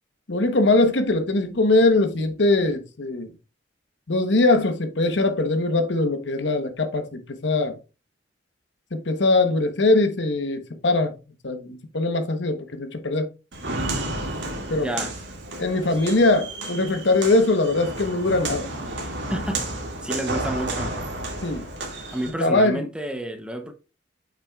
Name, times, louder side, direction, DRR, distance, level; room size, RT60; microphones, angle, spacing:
voice 1, 0.3-3.3 4.1-7.8 8.9-11.1 11.4-13.3 14.7-15.1 15.6-18.7 21.4-21.7 22.4-22.9, left 2 dB, 75° left, 1.0 m, -21 dB
Walk footsteps, 13.5-22.3, right 2 dB, 80° right, 2.1 m, -31 dB
voice 2, 14.7-15.1 19.3-19.7 20.0-20.9 22.1-23.7, right 1 dB, 5° right, 0.7 m, -29 dB
8.4 x 5.9 x 2.3 m
head